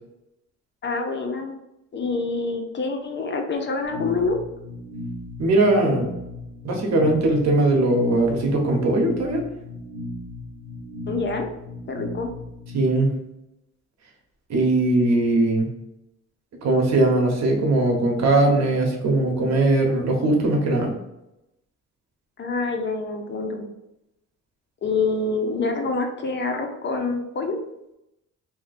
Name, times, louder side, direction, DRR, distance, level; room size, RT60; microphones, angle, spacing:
voice 1, 0.8-1.5 1.9-4.4 11.1-11.5 11.9-12.3 22.4-23.6 24.8-27.6, left 3 dB, 40° left, 4 dB, 0.6 m, -26 dB
sound 1, 3.8-12.8, left 1 dB, 25° right, 1.1 m, -36 dB
voice 2, 5.4-6.1 6.6-9.4 12.7-13.2 14.5-15.7 16.6-20.9, right 2 dB, 60° right, 2 dB, 1.0 m, -20 dB
2.7 x 2.1 x 4.0 m, 0.88 s
cardioid pair, 90°, 30 cm